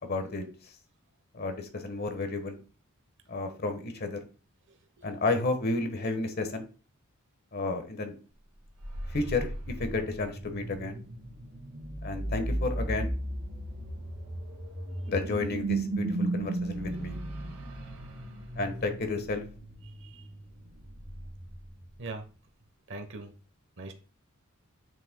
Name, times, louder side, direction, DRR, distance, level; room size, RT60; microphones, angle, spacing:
voice 1, 0.0-0.5 1.3-2.6 3.3-4.2 5.0-6.7 7.5-8.1 9.1-9.5 9.8-11.0 12.0-13.1 15.1-17.2 18.6-19.4, left 3 dB, 45° left, 7 dB, 1.2 m, -32 dB
voice 2, 4.7-5.1 19.8-20.3 22.0-22.2 22.9-23.3 23.8-23.9, right 3 dB, 60° right, 5 dB, 1.0 m, -42 dB
sound 1, 8.6-22.1, right 2 dB, 90° right, 1.8 m, -36 dB
7.5 x 6.2 x 2.2 m, 0.36 s
head